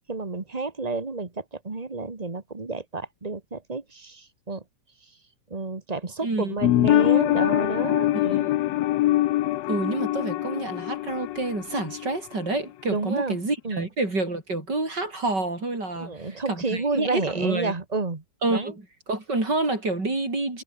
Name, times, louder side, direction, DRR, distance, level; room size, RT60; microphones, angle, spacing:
voice 1, 0.1-4.6 5.5-8.6 12.9-13.4 13.6-13.9 16.0-18.7, right 3 dB, 20° right, 1.2 m, -30 dB
voice 2, 6.2-6.5 8.1-8.5 9.7-17.7 18.4-18.8 19.1-20.6, right 2 dB, 35° right, 6.1 m, -28 dB
sound 1, 6.6-12.1 12.4-12.5, left 15 dB, 70° left, 1.8 m, -23 dB
omnidirectional pair, 3.3 m